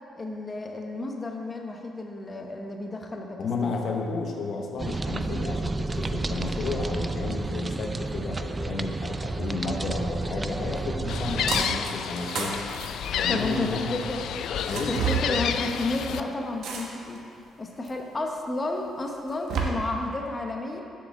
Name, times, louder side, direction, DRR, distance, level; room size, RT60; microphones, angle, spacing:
voice 1, 0.2-3.8 13.3-14.2 14.9-17.2 17.6-20.8, left 2 dB, 25° left, 2 dB, 0.9 m, -32 dB
voice 2, 3.4-12.6 13.2-14.0 14.7-15.4, left 3 dB, 60° left, 2 dB, 0.8 m, -32 dB
sound 1, 4.8-11.7, right 2 dB, 25° right, 0.3 m, -31 dB
Gull seagull, 11.1-16.2, left 8 dB, 75° left, 0.3 m, -30 dB
sound 2, 11.5-11.9 12.2-13.7 14.6-15.2 16.6-17.2 17.8-17.9 19.1-19.6, right 6 dB, 75° right, 1.1 m, -30 dB
7.1 x 4.8 x 7.0 m, 2.6 s
cardioid pair, 90°, 0 cm